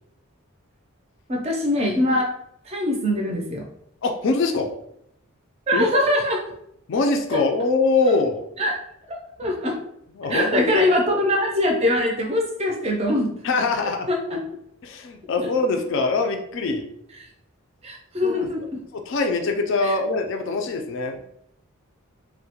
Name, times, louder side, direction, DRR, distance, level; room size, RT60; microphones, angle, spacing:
voice 1, 1.3-2.3 2.7-3.6 5.7-6.4 8.6-8.7 9.1-9.7 10.3-13.3 14.1-14.4 17.8-18.8 19.8-19.9, left 1 dB, 30° right, 0 dB, 0.4 m, -22 dB
voice 2, 4.0-4.7 5.7-6.0 6.9-8.4 10.2-10.9 13.4-14.1 14.8-16.9 18.2-18.5 18.9-21.2, left 3 dB, 60° left, 5 dB, 0.3 m, -23 dB
2.3 x 2.1 x 2.9 m, 0.75 s
head